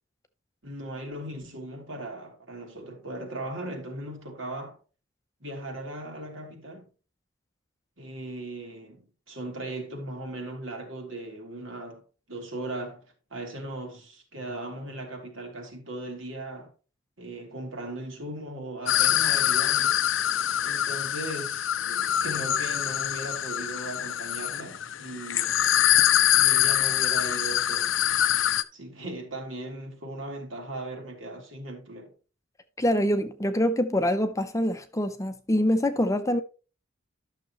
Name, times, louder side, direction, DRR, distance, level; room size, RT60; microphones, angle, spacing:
voice 1, 0.6-4.8 5.4-6.9 8.0-12.0 12.3-13.0 13.3-16.7 17.2-20.1 20.6-25.6 26.3-27.9 28.3-32.1, right 1 dB, 70° right, 2.7 m, -38 dB
sound 1, 18.9-28.6, left 11 dB, 65° left, 0.5 m, -24 dB
voice 2, 32.8-36.4, equal, 15° left, 0.6 m, -25 dB
12.0 x 6.6 x 3.0 m
head